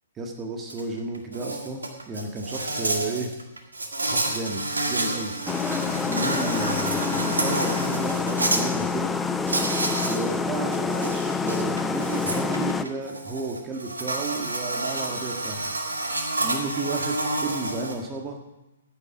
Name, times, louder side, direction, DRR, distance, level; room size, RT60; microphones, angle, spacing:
voice 1, 0.2-3.3 4.1-5.4 6.0-9.1 10.0-15.7 16.4-17.2 17.4-18.4, right 3 dB, 20° right, 1 dB, 1.9 m, -32 dB
Insect, 0.7-0.8 1.1-8.6 9.5-10.2 10.5-17.9, right 2 dB, 80° right, 2.1 m, -29 dB
sound 1, 5.5-12.8, left 5 dB, 10° left, 0.7 m, -27 dB
15.0 x 9.7 x 6.0 m, 0.97 s
figure-of-eight pair, 120°, 0 cm